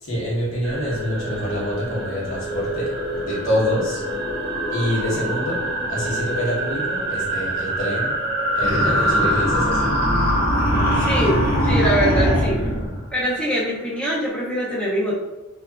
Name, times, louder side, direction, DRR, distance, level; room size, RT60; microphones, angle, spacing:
voice 1, 0.0-4.0 4.7-5.6 5.9-8.1 8.5-9.9, left 1 dB, 65° left, -6 dB, 0.9 m, -26 dB
sound 1, 0.6-13.3, right 1 dB, 45° right, 0.7 m, -26 dB
sound 2, 8.6-12.9, equal, 45° left, 1.0 m, -21 dB
voice 2, 10.9-12.6 13.1-15.2, equal, 5° left, -7 dB, 0.4 m, -23 dB
2.7 x 2.2 x 2.3 m, 1.0 s
head